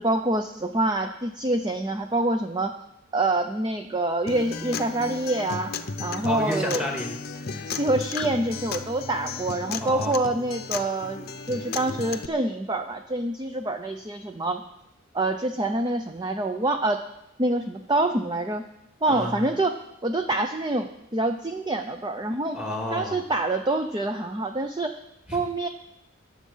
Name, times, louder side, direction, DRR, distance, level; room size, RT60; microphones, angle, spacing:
voice 1, 0.0-2.7 3.1-6.9 7.7-14.6 15.1-17.0 17.4-18.6 19.0-19.8 20.0-22.6 22.9-25.0 25.3-25.7, right 2 dB, 20° right, 6 dB, 0.6 m, -26 dB
Acoustic guitar, 4.3-12.3, left 4 dB, 45° left, 0.7 m, -34 dB
voice 2, 6.2-7.7 9.8-10.2 19.1-19.4 22.5-23.2 25.3-25.4, left 1 dB, 5° right, 0 dB, 2.2 m, -31 dB
21.5 x 7.4 x 5.6 m, 0.88 s
head